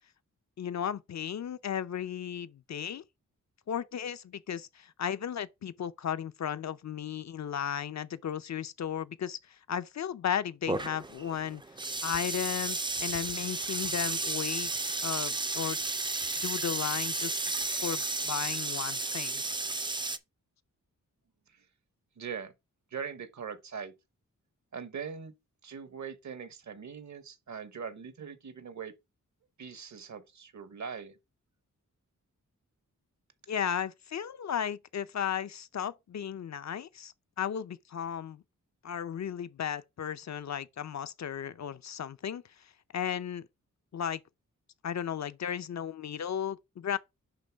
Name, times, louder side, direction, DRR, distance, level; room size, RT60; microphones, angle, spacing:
voice 1, 0.6-3.0 3.7-11.6 12.0-15.8 16.4-17.4 17.7-19.4 33.5-38.4 38.8-43.4 43.9-44.2 44.8-47.0, left 8 dB, 60° left, 0.5 m, -35 dB
sound 1, 10.7-20.2, right 3 dB, 15° right, 0.4 m, -33 dB
voice 2, 22.2-22.5 22.9-23.9 24.7-25.4 25.6-28.9 29.6-31.2, right 6 dB, 60° right, 1.0 m, -41 dB
10.5 x 3.8 x 3.4 m
wide cardioid pair, 155°, 32 cm